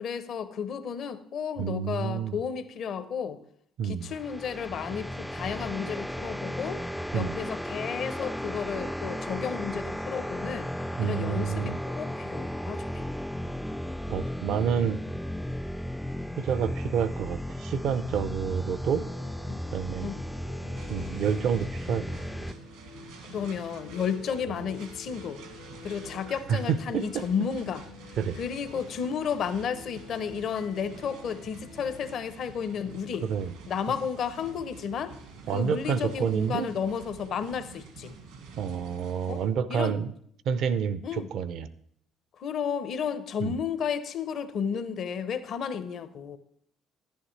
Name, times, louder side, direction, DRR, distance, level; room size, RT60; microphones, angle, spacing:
voice 1, 0.0-3.4 3.8-6.8 7.1-10.7 11.0-13.2 19.5-19.6 20.0-20.2 23.3-25.4 25.8-27.8 28.4-33.3 33.7-35.1 35.5-38.1 39.3-39.4 39.7-39.9 41.0-41.3 42.4-46.4, left 7 dB, 60° left, 12 dB, 0.7 m, -32 dB
voice 2, 1.6-2.4 3.8-4.1 7.1-7.4 11.0-11.8 14.1-15.0 16.4-19.0 19.7-20.1 20.9-22.0 26.5-27.2 28.2-28.4 33.2-33.5 35.5-36.7 38.6-40.1 40.5-41.7 43.4-43.6, right 7 dB, 65° right, 14 dB, 0.5 m, -28 dB
sound 1, 4.0-22.5, equal, ahead, 0.3 m, -35 dB
sound 2, 18.9-32.2, left 5 dB, 90° left, 0.9 m, -50 dB
sound 3, 20.7-39.5, right 4 dB, 85° right, 1.8 m, -48 dB
11.0 x 10.0 x 3.3 m, 0.67 s
supercardioid pair, 70°, 0 cm